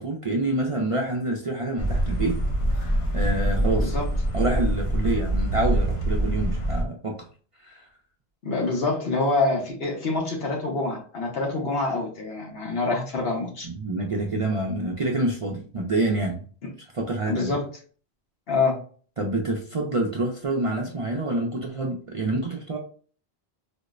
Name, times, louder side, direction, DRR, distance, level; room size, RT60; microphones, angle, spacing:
voice 1, 0.0-2.4 2.7-3.9 4.3-7.2 7.6-7.9 13.6-16.4 16.9-17.5 19.2-22.8, right 2 dB, 45° right, 0 dB, 0.5 m, -27 dB
sound 1, 1.8-6.8, right 1 dB, 40° left, 0.5 m, -24 dB
voice 2, 3.6-4.0 8.4-13.7 17.3-17.6 18.5-18.8, left 3 dB, 70° left, 0 dB, 1.2 m, -26 dB
4.3 x 2.0 x 2.4 m, 0.42 s
omnidirectional pair, 1.0 m